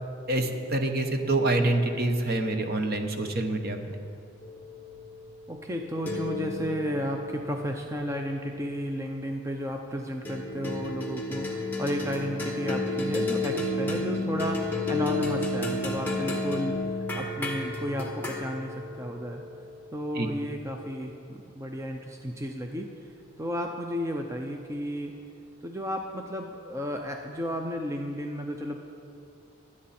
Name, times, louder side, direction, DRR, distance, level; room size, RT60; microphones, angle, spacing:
voice 1, 0.3-3.8 20.1-20.3, right 2 dB, 45° right, 6 dB, 1.0 m, -26 dB
sound 1, 4.4-9.1 10.3-20.7, left 2 dB, 10° left, 1.6 m, -32 dB
voice 2, 5.5-19.4 19.9-25.2 25.6-28.8, equal, 15° right, 3 dB, 0.5 m, -33 dB
24.0 x 8.6 x 4.3 m, 2.7 s
head